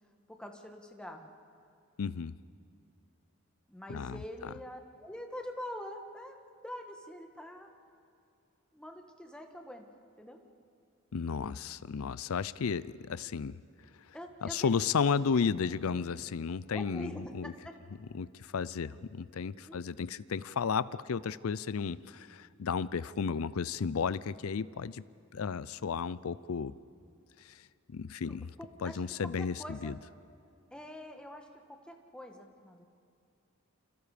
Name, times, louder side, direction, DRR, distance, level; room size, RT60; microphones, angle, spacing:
voice 1, 0.3-1.3 3.7-6.4 6.6-7.7 8.7-9.9 10.2-10.4 14.1-14.7 15.0-15.4 16.7-17.7 19.7-19.8 28.3-29.0 29.4-29.9 30.7-32.9, equal, 5° left, 3 dB, 1.7 m, -45 dB
voice 2, 2.0-2.3 3.9-4.2 11.1-13.6 14.4-17.5 18.1-25.0 25.3-26.7 27.9-28.5 28.8-29.9, left 6 dB, 80° left, 18 dB, 0.5 m, -33 dB
29.0 x 26.5 x 5.1 m, 2.5 s
head